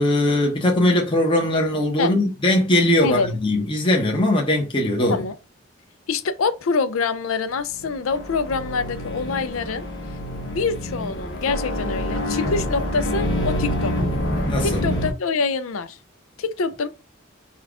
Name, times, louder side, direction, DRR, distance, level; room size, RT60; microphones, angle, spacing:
voice 1, 0.0-5.2 14.5-15.0, left 1 dB, 25° left, 0.9 m, -20 dB
voice 2, 3.0-3.3 5.1-5.3 6.1-9.9 10.5-13.9 14.6-16.0 16.4-16.9, left 4 dB, 90° left, 0.5 m, -25 dB
sound 1, 7.6-15.1, equal, 60° left, 1.2 m, -26 dB
5.5 x 2.4 x 3.5 m
head